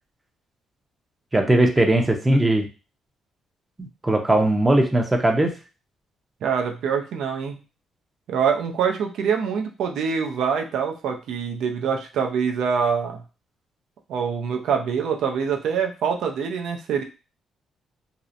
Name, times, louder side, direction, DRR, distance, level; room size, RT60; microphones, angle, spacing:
voice 1, 1.3-2.7 3.8-5.5, right 1 dB, 20° right, 3 dB, 0.5 m, -19 dB
voice 2, 6.4-7.6 8.3-13.2 14.1-17.0, right 6 dB, 80° right, 3 dB, 0.4 m, -25 dB
2.7 x 2.0 x 2.5 m, 0.32 s
cardioid pair, 90°, 0 cm